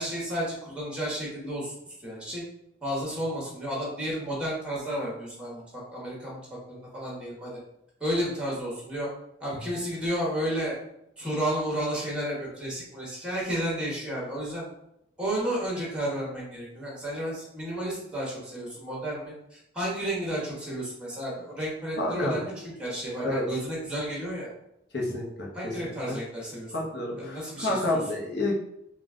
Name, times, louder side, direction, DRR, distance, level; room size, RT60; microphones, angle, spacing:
voice 1, 0.0-1.7 2.0-2.4 2.8-5.6 5.9-6.4 6.7-7.6 8.0-9.1 9.4-10.8 11.2-14.6 15.2-24.5 25.5-26.7 27.2-28.0, equal, 5° right, -4 dB, 1.2 m, -32 dB
voice 2, 22.0-22.4 23.2-23.4 24.9-25.2 26.0-26.2 26.7-28.5, left 2 dB, 55° left, -2 dB, 0.9 m, -29 dB
3.9 x 2.4 x 3.6 m, 0.81 s
head